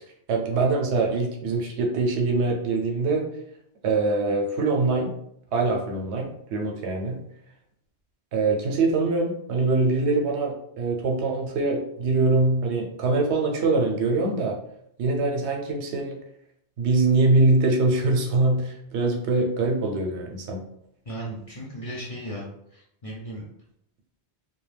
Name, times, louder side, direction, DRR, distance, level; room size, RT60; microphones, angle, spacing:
voice 1, 0.3-3.3 3.8-5.1 5.5-7.2 8.3-14.6 15.0-16.2 16.8-20.6, right 3 dB, 80° right, 3 dB, 0.9 m, -23 dB
voice 2, 21.0-23.4, right 1 dB, 45° left, -4 dB, 0.5 m, -36 dB
2.3 x 2.1 x 3.2 m, 0.73 s
omnidirectional pair, 1.1 m